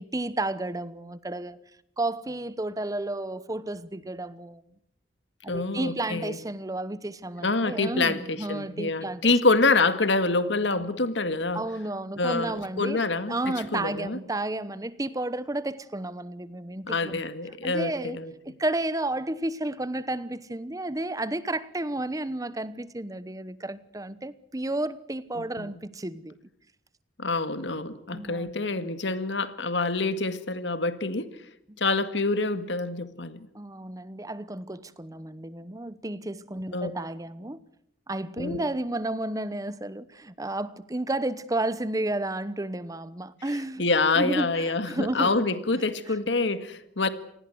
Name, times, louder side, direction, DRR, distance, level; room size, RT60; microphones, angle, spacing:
voice 1, 0.0-1.6 2.0-4.6 5.4-9.3 11.5-17.2 17.6-18.2 18.4-26.3 28.1-28.5 31.7-31.8 33.5-37.6 38.1-43.8 44.1-45.5, right 1 dB, 20° right, 1.0 m, -32 dB
voice 2, 5.5-6.4 7.4-11.6 12.2-14.2 16.9-18.3 25.4-25.7 27.2-31.3 31.8-33.5 36.7-36.9 38.4-38.6 43.8-47.1, left 3 dB, 85° left, 1.9 m, -26 dB
28.0 x 19.5 x 7.9 m
head